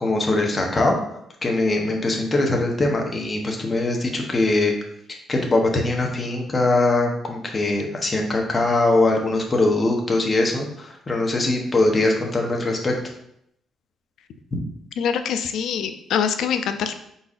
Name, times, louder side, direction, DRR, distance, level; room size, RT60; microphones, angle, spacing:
voice 1, 0.0-0.9 1.4-4.7 5.3-12.9 14.5-14.6, left 2 dB, 25° left, 1 dB, 0.8 m, -21 dB
voice 2, 15.0-16.9, left 7 dB, 75° left, 9 dB, 0.4 m, -24 dB
4.7 x 3.9 x 2.4 m, 0.75 s
cardioid pair, 125°, 0 cm